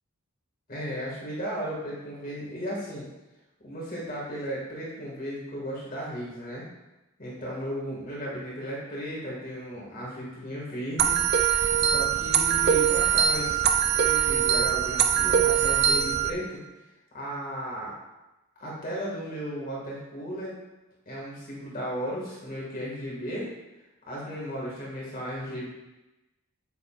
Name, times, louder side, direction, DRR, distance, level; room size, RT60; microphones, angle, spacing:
voice 1, 0.7-3.1 3.6-6.6 7.2-11.2 11.8-16.6 17.1-17.9 18.6-20.6 21.1-23.5 24.1-25.7, equal, 40° left, -5 dB, 2.1 m, -35 dB
sound 1, 11.0-16.3, right 8 dB, 45° right, 0.5 m, -22 dB
9.1 x 8.2 x 2.5 m, 1.0 s
head